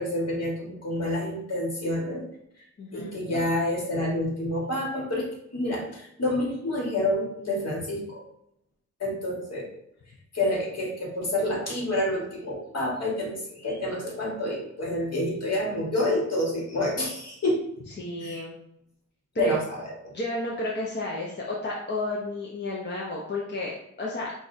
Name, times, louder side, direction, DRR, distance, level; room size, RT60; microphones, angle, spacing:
voice 1, 0.0-2.2 2.9-5.3 5.5-8.2 9.0-9.7 10.3-17.6 18.2-18.4 19.4-19.8, left 1 dB, 55° left, -3 dB, 1.5 m, -28 dB
voice 2, 2.8-3.2 18.0-18.6 19.3-19.6 20.1-24.3, left 1 dB, 35° left, -4 dB, 0.7 m, -31 dB
5.9 x 2.4 x 2.6 m, 0.76 s
wide cardioid pair, 80°, 30 cm